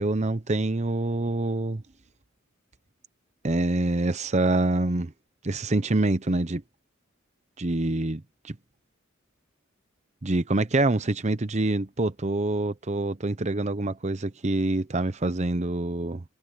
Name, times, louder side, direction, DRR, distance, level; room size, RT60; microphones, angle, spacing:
voice 1, 0.0-1.8 3.4-5.1 5.4-6.6 7.6-8.6 10.2-16.2, right 2 dB, 35° right, 0.8 m, -26 dB
head